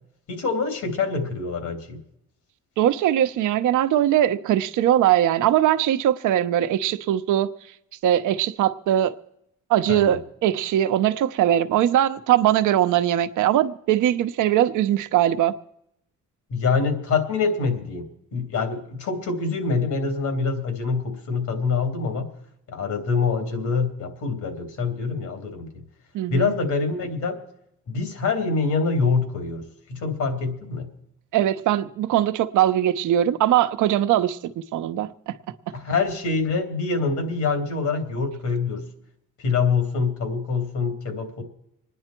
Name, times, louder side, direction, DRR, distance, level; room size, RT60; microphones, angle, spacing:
voice 1, 0.3-2.0 9.9-10.2 16.5-18.0 18.3-22.3 22.7-25.8 26.3-27.4 27.9-29.6 29.9-30.9 35.7-38.8 39.4-41.4, left 4 dB, 75° left, 3.2 m, -25 dB
voice 2, 2.8-7.5 8.0-9.2 9.7-15.6 26.1-26.5 31.3-35.3, right 12 dB, 80° right, 0.9 m, -21 dB
26.0 x 10.0 x 4.5 m
cardioid pair, 90°, 30 cm